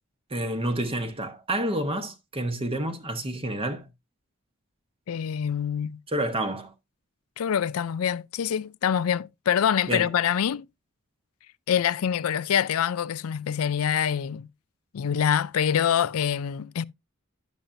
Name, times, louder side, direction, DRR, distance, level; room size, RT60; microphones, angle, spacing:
voice 1, 0.3-3.9 6.1-6.7 9.9-10.1, right 1 dB, 25° right, 1.0 m, -29 dB
voice 2, 5.1-6.0 7.4-10.7 11.7-14.5 14.9-16.8, left 8 dB, 85° left, 0.4 m, -25 dB
10.0 x 7.3 x 2.6 m
head